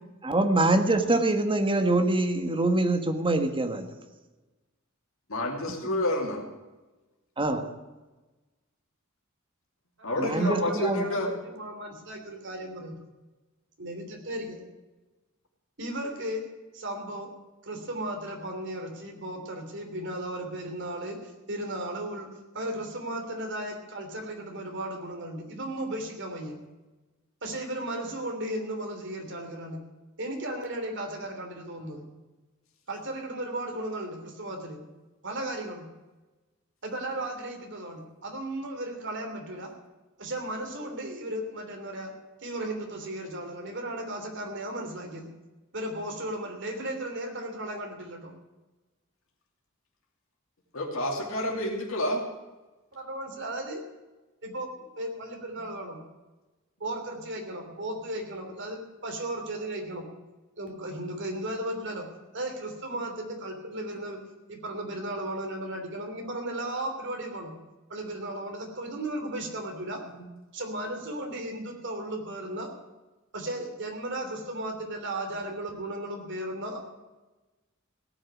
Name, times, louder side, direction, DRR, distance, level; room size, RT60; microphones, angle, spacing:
voice 1, 0.2-3.8 5.8-6.0 7.4-7.6 10.2-11.1, right 2 dB, 25° right, 7 dB, 1.4 m, -24 dB
voice 2, 5.3-6.4 10.0-11.3 50.7-52.2 70.2-70.3, left 1 dB, 75° left, 0 dB, 2.8 m, -29 dB
voice 3, 10.0-10.8 11.0-12.9 13.8-14.6 15.8-16.5 16.7-17.3 17.6-26.6 27.4-29.8 30.2-32.0 32.9-34.8 35.2-35.9 36.8-39.7 40.2-42.1 42.4-45.3 45.7-48.3 52.9-53.8 54.4-56.0 56.8-60.0 60.6-62.1 62.3-64.2 64.5-67.5 67.9-70.0 70.5-72.7 73.3-76.8, right 1 dB, 60° right, 3 dB, 3.1 m, -35 dB
17.0 x 6.5 x 9.6 m, 1.2 s
head